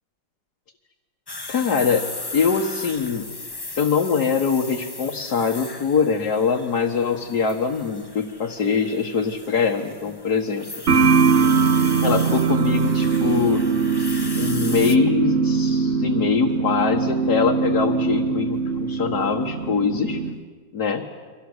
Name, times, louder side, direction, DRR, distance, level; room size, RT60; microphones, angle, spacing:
sound 1, 1.3-15.0, left 2 dB, 20° left, 0.8 m, -37 dB
voice 1, 1.5-3.3 3.8-10.7 12.0-13.6 14.4-20.2 20.7-21.0, left 6 dB, 55° left, 1 dB, 2.0 m, -23 dB
sound 2, 10.9-20.4, right 5 dB, 40° right, 1.2 m, -21 dB
30.0 x 24.5 x 8.0 m, 1.5 s
omnidirectional pair, 2.2 m